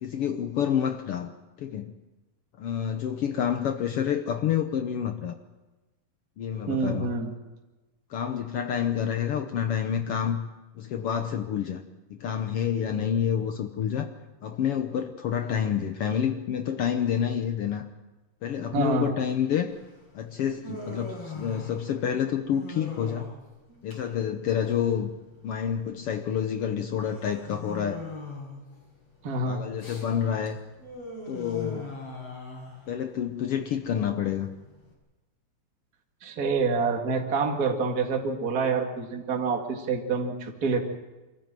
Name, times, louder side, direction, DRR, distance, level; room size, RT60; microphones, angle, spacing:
voice 1, 0.0-1.9 2.6-5.3 6.4-7.1 8.1-10.5 10.8-11.8 12.1-14.1 14.4-17.8 18.4-19.8 20.1-23.3 23.8-25.1 25.4-28.0 29.4-30.6 31.3-31.9 32.9-34.5, left 8 dB, 85° left, 7 dB, 1.2 m, -28 dB
voice 2, 6.7-7.3 18.7-19.1 29.2-29.6 36.2-40.8, right 4 dB, 30° right, 2 dB, 2.1 m, -27 dB
Human voice, 19.7-34.9, left 2 dB, 45° left, 6.6 m, -42 dB
25.0 x 14.5 x 9.0 m, 1.1 s
omnidirectional pair, 3.9 m